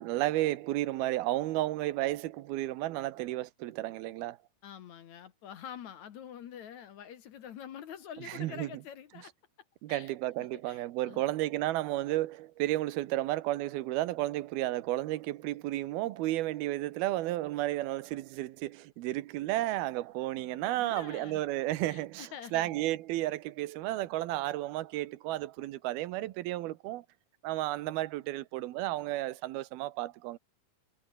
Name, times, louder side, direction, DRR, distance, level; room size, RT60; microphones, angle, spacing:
voice 1, 0.0-4.4 8.3-8.7 9.8-27.1 27.4-30.4, right 16 dB, 85° right, 2.9 m, -32 dB
voice 2, 4.6-9.3 9.9-10.1 10.5-11.3 20.4-22.8, left 9 dB, 60° left, 2.4 m, -47 dB
omnidirectional pair, 4.3 m